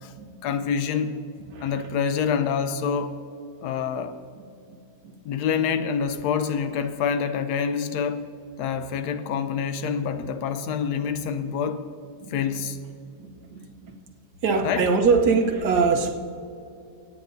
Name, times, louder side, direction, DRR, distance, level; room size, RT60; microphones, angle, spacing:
voice 1, 0.4-1.2 1.6-3.2 3.6-4.2 5.2-8.3 8.6-11.8 12.3-12.8 14.6-14.9, left 6 dB, 80° left, 1.3 m, -26 dB
voice 2, 1.5-1.8 4.4-4.5 4.7-4.8 5.0-5.1 12.2-12.6 13.2-14.0 14.4-16.1, right 4 dB, 85° right, 1.6 m, -23 dB
25.5 x 9.2 x 2.7 m
omnidirectional pair, 1.7 m